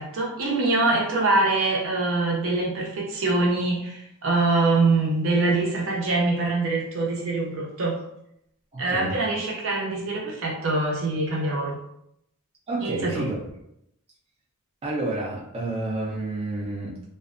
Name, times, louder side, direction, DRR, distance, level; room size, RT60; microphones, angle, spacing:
voice 1, 0.0-8.0 8.8-11.8 12.8-13.3, right 2 dB, 60° right, -2 dB, 0.7 m, -24 dB
voice 2, 8.7-9.2 12.7-13.5 14.8-17.0, right 2 dB, 25° right, -4 dB, 0.4 m, -29 dB
2.5 x 2.1 x 2.4 m, 0.76 s
head